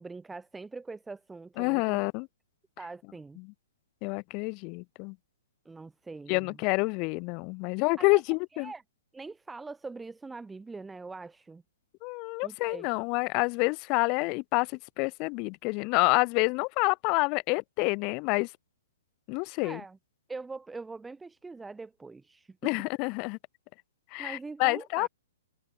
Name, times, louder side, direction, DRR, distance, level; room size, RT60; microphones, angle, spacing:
voice 1, 0.0-2.0 2.8-3.4 5.6-6.6 8.0-8.2 8.5-8.8 9.1-11.6 12.4-12.9 19.6-20.0 20.3-22.6 24.2-25.1, right 3 dB, 5° right, 3.2 m, -43 dB
voice 2, 1.6-2.3 3.4-3.5 4.0-5.1 6.3-8.7 12.0-14.7 15.0-18.5 19.3-19.8 22.6-23.4 24.1-25.1, left 31 dB, 35° left, 0.8 m, -28 dB
hypercardioid pair, 140°, 0 cm